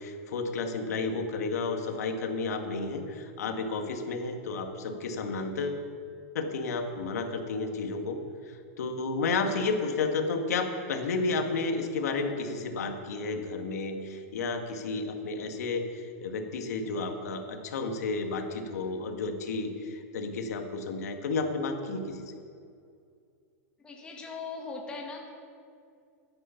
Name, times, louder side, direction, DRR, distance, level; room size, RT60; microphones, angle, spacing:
voice 1, 0.0-5.8 6.3-8.2 8.5-22.2, left 3 dB, 85° left, 5 dB, 1.8 m, -32 dB
voice 2, 23.8-25.3, left 4 dB, 10° left, -1 dB, 1.8 m, -40 dB
13.0 x 9.9 x 5.8 m, 2.3 s
supercardioid pair, 165°, 8 cm